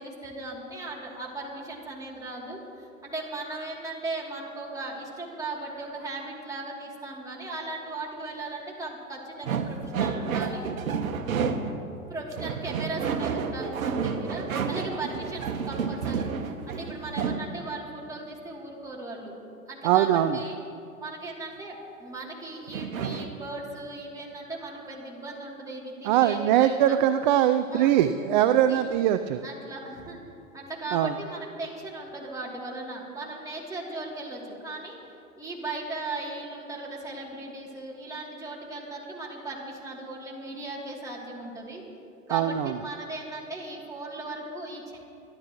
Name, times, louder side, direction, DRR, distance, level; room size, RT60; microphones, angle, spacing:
voice 1, 0.0-10.6 12.1-19.3 19.7-20.6 21.0-27.0 27.7-27.9 28.4-28.8 29.4-30.2 30.5-35.0 35.4-41.8 42.3-45.0, right 2 dB, 10° right, -4 dB, 3.0 m, -37 dB
sound 1, 9.4-11.9 12.4-17.5 22.7-23.3, right 6 dB, 70° right, 1.2 m, -30 dB
voice 2, 19.8-20.4 26.0-29.4 30.9-31.1 42.3-42.7, right 11 dB, 35° right, 10 dB, 0.4 m, -22 dB
26.0 x 12.0 x 3.1 m, 2.6 s
hypercardioid pair, 110°, 42 cm